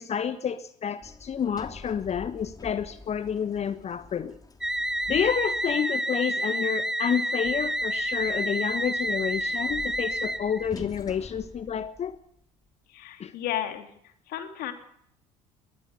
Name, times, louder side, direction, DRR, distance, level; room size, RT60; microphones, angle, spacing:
voice 1, 0.0-4.4 5.1-12.2 13.2-13.3, left 8 dB, 35° left, 13 dB, 1.2 m, -29 dB
Sliding door, 1.0-5.8 7.4-12.4, left 3 dB, 20° left, 3.1 m, -47 dB
sound 1, 4.6-10.7, right 1 dB, 5° right, 0.8 m, -29 dB
voice 2, 12.9-13.9 14.3-14.7, left 11 dB, 55° left, 6 dB, 3.1 m, -33 dB
22.0 x 19.5 x 7.0 m, 0.70 s
figure-of-eight pair, 60°, 19 cm